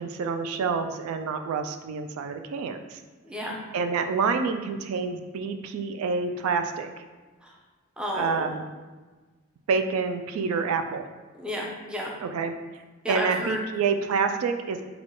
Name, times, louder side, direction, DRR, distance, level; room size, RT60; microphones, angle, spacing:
voice 1, 0.0-3.0 3.7-6.9 8.1-8.6 9.7-11.0 12.2-12.5 13.1-14.8, right 5 dB, 90° right, 8 dB, 0.3 m, -27 dB
voice 2, 3.2-3.6 7.4-7.6 8.0-8.6 11.3-12.1 13.0-13.6, equal, 5° right, -3 dB, 0.5 m, -32 dB
3.5 x 2.3 x 3.7 m, 1.3 s
head